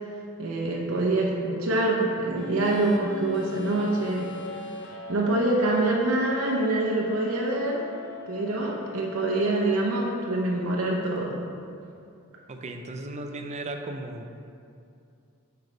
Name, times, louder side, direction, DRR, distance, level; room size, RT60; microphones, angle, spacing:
voice 1, 0.4-4.3 4.5-4.6 5.1-7.8 8.3-11.4, right 2 dB, 75° right, -2 dB, 0.7 m, -25 dB
sound 1, 2.3-10.3, left 4 dB, 55° left, 0.6 m, -40 dB
voice 2, 12.5-14.3, right 2 dB, 35° right, 5 dB, 0.5 m, -36 dB
7.8 x 3.3 x 5.0 m, 2.5 s
head